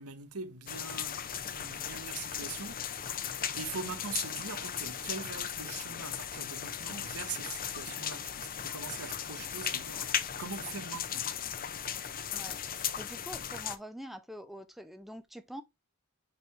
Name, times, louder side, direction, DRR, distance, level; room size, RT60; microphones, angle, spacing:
voice 1, 0.0-11.3, right 5 dB, 70° right, 1.4 m, -42 dB
sound 1, 0.7-13.8, left 9 dB, 40° left, 0.8 m, -37 dB
voice 2, 12.3-15.6, equal, ahead, 0.6 m, -45 dB
10.0 x 4.1 x 3.2 m
head